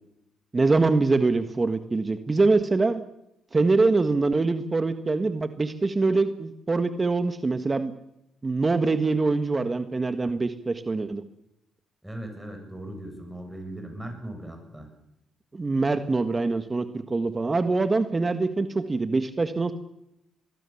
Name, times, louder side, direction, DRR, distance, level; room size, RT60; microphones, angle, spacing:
voice 1, 0.5-3.0 3.5-7.9 8.4-11.2 15.5-19.7, right 3 dB, 25° right, 9 dB, 1.6 m, -24 dB
voice 2, 12.0-14.9, right 1 dB, 5° right, 4 dB, 7.4 m, -38 dB
24.0 x 21.0 x 7.3 m, 0.82 s
cardioid pair, 90°, 0 cm